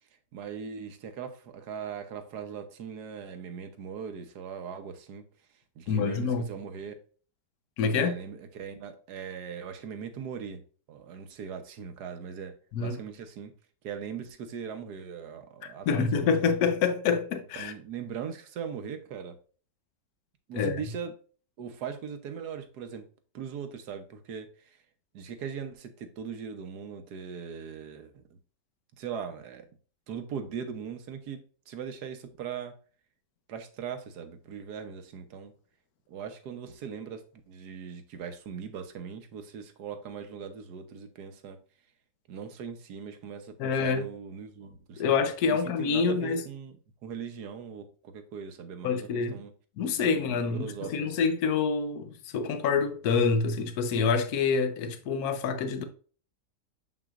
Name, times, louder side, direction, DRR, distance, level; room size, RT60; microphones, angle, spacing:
voice 1, 0.3-5.2 5.8-6.9 7.9-10.6 10.9-12.5 12.8-13.5 13.8-16.6 17.6-19.4 20.5-21.1 21.6-23.0 23.3-24.5 25.1-28.2 29.0-29.6 30.1-31.4 31.7-32.7 33.5-35.5 36.1-41.6 42.3-45.1 45.5-46.7 47.0-49.5 50.0-51.3, right 7 dB, 70° right, 1.4 m, -40 dB
voice 2, 5.9-6.5 7.8-8.2 12.7-13.0 15.6-17.7 20.5-20.8 43.6-44.1 45.0-46.4 48.8-49.4 49.8-55.8, left 5 dB, 65° left, 1.2 m, -27 dB
7.1 x 5.9 x 2.4 m
omnidirectional pair, 1.8 m